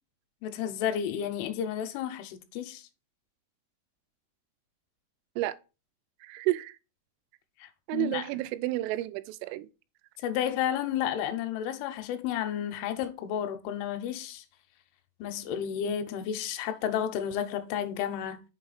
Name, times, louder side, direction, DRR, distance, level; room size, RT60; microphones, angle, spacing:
voice 1, 0.4-2.9 7.6-8.4 10.2-14.4 15.2-18.4, left 9 dB, 85° left, 3.2 m, -32 dB
voice 2, 6.2-6.8 7.9-9.7, right 17 dB, 90° right, 3.1 m, -31 dB
7.1 x 5.0 x 4.0 m
omnidirectional pair, 5.5 m